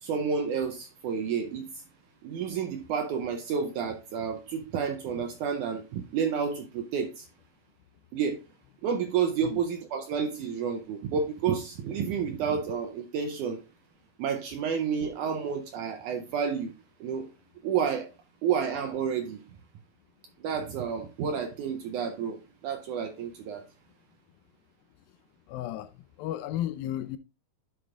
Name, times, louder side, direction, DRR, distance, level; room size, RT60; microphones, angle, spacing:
voice 1, 0.0-1.8 2.2-7.3 8.1-8.4 8.8-13.6 14.2-16.7 17.0-17.3 17.6-18.1 18.4-19.4 20.4-23.6, right 6 dB, 75° right, 1.9 m, -30 dB
voice 2, 25.5-25.9 26.2-27.2, left 12 dB, 85° left, 2.3 m, -33 dB
10.5 x 6.3 x 2.4 m
omnidirectional pair, 4.2 m